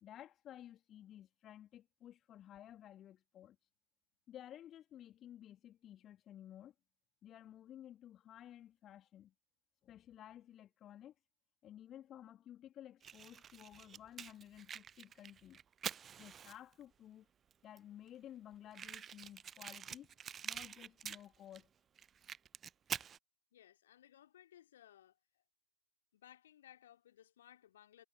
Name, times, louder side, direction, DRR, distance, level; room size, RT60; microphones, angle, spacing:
voice 1, 0.0-3.6 4.3-6.7 7.2-9.3 9.8-11.1 11.6-15.6 16.2-17.3 17.6-20.1 20.4-21.7, left 11 dB, 30° left, 1.7 m, -55 dB
Fire, 13.0-16.8 17.5-17.6 17.8-17.9 18.1-18.2 18.7-21.6 22.0-23.2, right 8 dB, 25° right, 0.5 m, -46 dB
voice 2, 23.5-25.1 26.1-28.1, left 11 dB, 60° left, 2.4 m, -61 dB
figure-of-eight pair, 90°, 0 cm